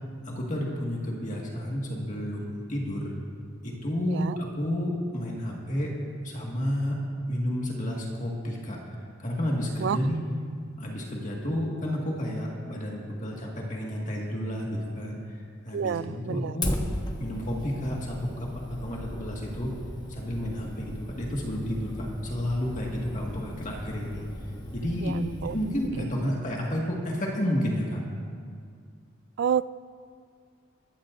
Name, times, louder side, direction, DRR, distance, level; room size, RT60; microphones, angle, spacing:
voice 1, 0.2-3.1 3.6-5.9 6.2-7.0 7.3-8.9 9.2-10.2 10.8-16.7 17.2-19.7 20.1-24.2 24.7-25.2 25.4-28.0, equal, 40° left, -3 dB, 1.8 m, -31 dB
voice 2, 15.7-16.5 25.0-25.6 29.4-29.7, right 7 dB, 60° right, 17 dB, 0.3 m, -29 dB
Fire, 16.6-25.9, left 1 dB, 20° left, 1.1 m, -37 dB
21.5 x 14.5 x 2.6 m, 2.1 s
head